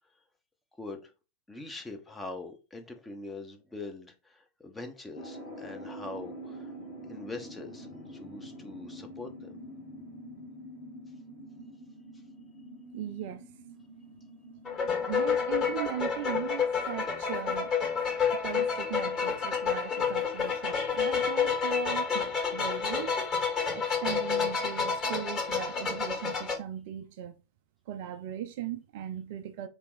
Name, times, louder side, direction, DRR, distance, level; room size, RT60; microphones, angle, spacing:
voice 1, 0.8-1.1 1.5-6.7 7.1-9.5 18.1-18.2, left 2 dB, 10° left, 0.8 m, -43 dB
sound 1, 5.2-21.2, equal, 75° left, 2.5 m, -47 dB
voice 2, 12.9-13.4 15.1-17.7 18.3-23.2 23.7-27.3 27.9-29.7, right 11 dB, 50° right, 0.5 m, -38 dB
sound 2, 14.6-26.6, left 6 dB, 30° left, 2.2 m, -29 dB
3.4 x 2.9 x 4.8 m
figure-of-eight pair, 90°, 0 cm